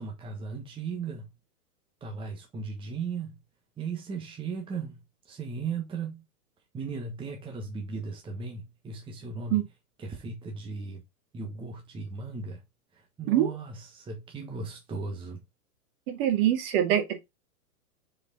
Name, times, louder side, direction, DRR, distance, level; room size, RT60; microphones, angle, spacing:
voice 1, 0.0-1.3 2.0-3.4 3.8-6.2 6.7-9.6 10.0-11.0 11.3-12.6 12.9-15.4, right 4 dB, 10° right, 1.3 m, -37 dB
voice 2, 16.1-17.2, right 11 dB, 40° right, 1.9 m, -24 dB
6.7 x 4.8 x 4.0 m
hypercardioid pair, 140°, 44 cm